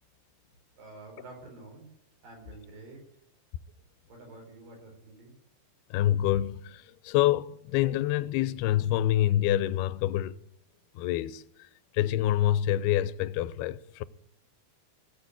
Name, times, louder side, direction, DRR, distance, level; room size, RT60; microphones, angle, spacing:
voice 1, 0.8-1.9 2.2-3.0 4.1-5.4, right 2 dB, 60° right, 6.1 m, -48 dB
voice 2, 5.9-10.4 11.0-11.4 11.9-14.0, left 13 dB, 85° left, 2.6 m, -26 dB
17.5 x 6.7 x 9.8 m
omnidirectional pair, 4.5 m